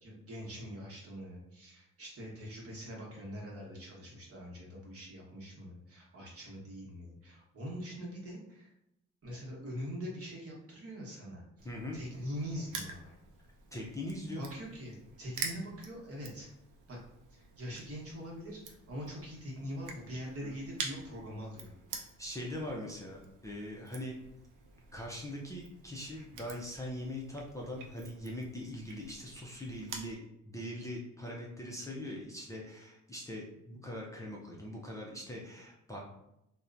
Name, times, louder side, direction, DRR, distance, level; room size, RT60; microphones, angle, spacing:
voice 1, 0.0-8.7 9.2-13.1 14.4-16.5 16.9-17.0 17.3-21.7, equal, 50° right, -3 dB, 1.1 m, -43 dB
voice 2, 11.6-12.0 13.7-14.4 20.4-20.6 21.9-24.1 24.9-30.2 30.4-36.0, left 1 dB, 10° left, -3 dB, 0.5 m, -41 dB
Crushing, 11.6-30.1, right 5 dB, 85° right, 0.5 m, -48 dB
2.8 x 2.1 x 2.4 m, 0.83 s
cardioid pair, 90°, 30 cm